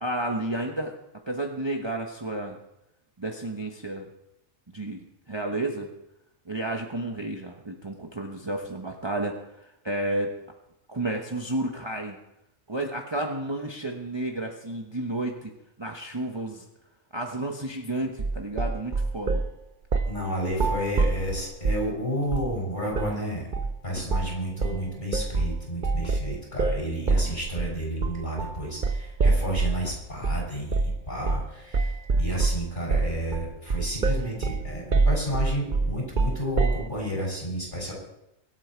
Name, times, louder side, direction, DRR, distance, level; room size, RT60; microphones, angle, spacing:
voice 1, 0.0-1.0 1.3-2.6 3.2-4.1 4.7-5.9 6.5-10.3 10.9-12.2 12.7-15.5 15.8-16.6 17.1-19.4 27.2-27.3, right 1 dB, 20° right, 2 dB, 1.1 m, -31 dB
sound 1, 18.2-19.5 19.9-20.2 20.5-21.9 22.3-22.6 22.9-23.1 23.5-23.8 24.1-24.4 24.6-29.8 30.2-30.4 30.7-31.0 31.3-31.5 31.7-36.9, right 3 dB, 45° right, 0.9 m, -25 dB
voice 2, 20.1-31.9 32.2-37.9, equal, 35° left, -3 dB, 6.7 m, -31 dB
sound 2, 21.3-22.8 23.2-23.3 23.5-30.5 30.9-33.0 33.5-33.6 34.0-34.1, left 3 dB, 65° left, 2.2 m, -47 dB
24.0 x 9.0 x 4.6 m, 0.88 s
omnidirectional pair, 1.4 m